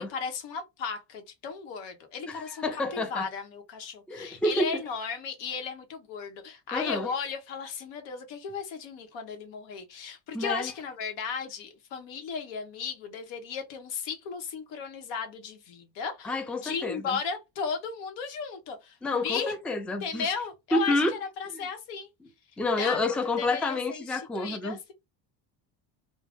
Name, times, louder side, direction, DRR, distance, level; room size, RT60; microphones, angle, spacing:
voice 1, 0.0-19.5 20.0-21.0 21.4-22.1 22.8-23.0 23.4-24.9, left 6 dB, 85° left, 1.0 m, -35 dB
voice 2, 2.3-3.3 4.1-4.8 6.7-7.1 10.3-10.7 16.2-17.2 19.0-20.3 20.7-21.1 21.5-21.7 22.6-24.8, left 2 dB, 5° left, 0.4 m, -29 dB
2.5 x 2.2 x 3.4 m
cardioid pair, 100°, 42 cm